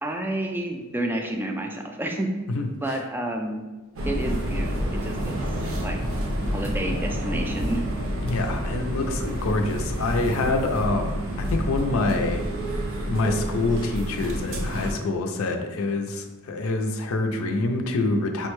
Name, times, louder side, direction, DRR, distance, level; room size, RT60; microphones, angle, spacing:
voice 1, 0.0-2.3 2.8-3.6 4.1-5.4 5.8-6.0 6.5-7.8, right 1 dB, 10° right, 3 dB, 0.3 m, -29 dB
voice 2, 2.5-3.0 8.2-12.4 13.1-18.5, left 2 dB, 80° left, 4 dB, 0.5 m, -26 dB
sound 1, 4.0-14.9, equal, 65° right, 0.6 m, -28 dB
5.4 x 2.1 x 3.0 m, 1.2 s
head